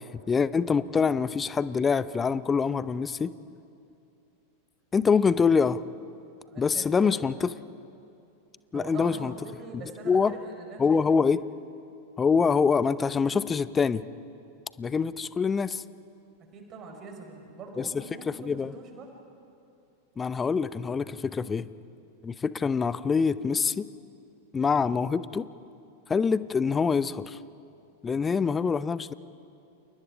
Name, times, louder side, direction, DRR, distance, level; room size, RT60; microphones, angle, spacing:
voice 1, 0.3-3.3 4.9-5.8 6.6-7.5 8.7-9.3 10.1-10.3 10.8-11.4 12.2-14.0 14.8-15.8 17.8-17.9 18.3-18.7 20.2-21.7 22.2-23.9 24.5-25.5 26.1-27.4 28.0-29.1, left 5 dB, 15° left, 17 dB, 0.7 m, -25 dB
voice 2, 6.4-7.3 8.7-11.0 16.5-19.1 21.5-21.7, right 4 dB, 30° right, 3 dB, 5.0 m, -43 dB
29.5 x 28.5 x 5.0 m, 2.6 s
figure-of-eight pair, 90°, 0 cm